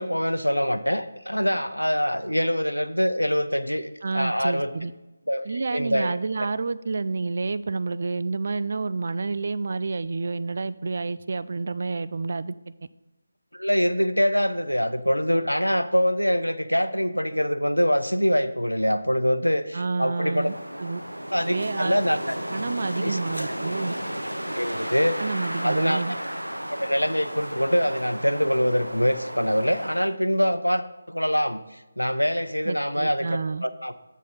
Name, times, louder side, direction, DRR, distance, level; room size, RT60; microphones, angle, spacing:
voice 1, 0.0-4.7 5.3-6.2 13.5-20.5 21.3-22.3 23.0-23.2 24.5-25.2 25.6-26.0 26.7-33.9, equal, 85° left, 10 dB, 0.6 m, -24 dB
voice 2, 4.0-4.9 5.4-12.5 19.7-20.5 20.8-21.0 21.4-22.0 22.5-24.0 25.2-26.2 32.7-33.6, right 3 dB, 45° right, 15 dB, 0.3 m, -29 dB
Wind, 20.3-30.2, equal, 85° right, 0.7 m, -34 dB
7.7 x 7.3 x 4.0 m, 1.0 s
figure-of-eight pair, 155°, 0 cm